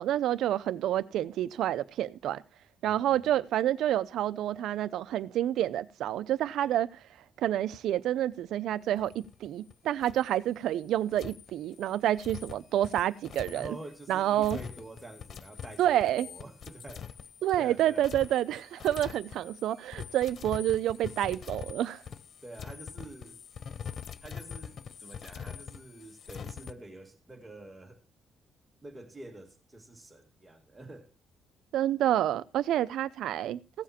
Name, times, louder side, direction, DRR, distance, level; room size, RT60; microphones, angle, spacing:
voice 1, 0.0-2.4 2.8-7.0 7.4-13.8 14.1-14.6 15.8-16.3 17.4-22.0 31.7-33.6, right 12 dB, 80° right, 0.6 m, -28 dB
voice 2, 2.8-3.3 13.5-17.1 17.6-18.1 22.4-23.4 24.2-28.0 28.8-31.1, right 2 dB, 15° right, 2.0 m, -47 dB
sound 1, 9.0-9.7 10.0-10.3 11.1-26.7, left 7 dB, 45° left, 0.5 m, -44 dB
15.5 x 7.3 x 4.3 m
cardioid pair, 135°, 0 cm